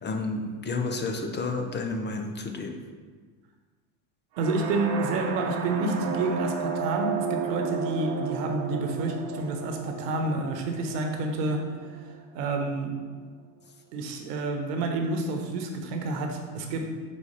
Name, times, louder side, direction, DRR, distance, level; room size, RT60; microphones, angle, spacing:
voice 1, 0.0-2.8, left 3 dB, 25° left, 4 dB, 0.6 m, -31 dB
sound 1, 4.4-12.2, right 5 dB, 60° right, 0.8 m, -33 dB
voice 2, 4.4-11.6 12.3-12.9 13.9-16.8, right 2 dB, 90° right, 4 dB, 1.1 m, -29 dB
4.9 x 4.2 x 5.1 m, 1.5 s
supercardioid pair, 105°, 47 cm